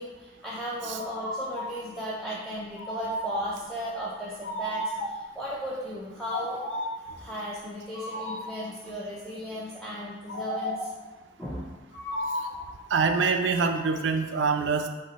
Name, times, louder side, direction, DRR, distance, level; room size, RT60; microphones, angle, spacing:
voice 1, 0.0-6.6 7.0-10.9 11.4-11.7, equal, 5° left, -7 dB, 0.4 m, -36 dB
sound 1, 1.0-1.8 2.8-3.7 4.4-5.3 6.2-7.1 7.9-8.6 10.3-11.0 11.9-12.7, equal, 75° left, 0.7 m, -34 dB
voice 2, 12.9-14.9, right 5 dB, 85° right, 6 dB, 0.4 m, -25 dB
5.2 x 2.1 x 4.0 m, 1.2 s
head